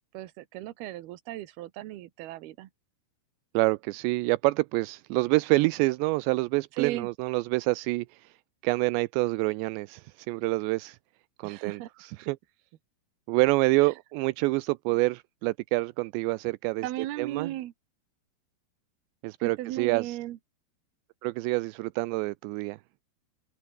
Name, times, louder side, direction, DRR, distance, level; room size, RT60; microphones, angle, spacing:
voice 1, 0.1-2.7 6.7-7.1 11.4-11.9 13.8-13.9 16.8-17.7 19.4-20.4, right 15 dB, 70° right, 3.0 m, -36 dB
voice 2, 3.5-8.3 8.6-11.0 11.4-12.4 13.3-16.9 17.2-17.5 19.2-20.2 21.2-22.8, right 23 dB, 85° right, 2.8 m, -27 dB
omnidirectional pair, 5.0 m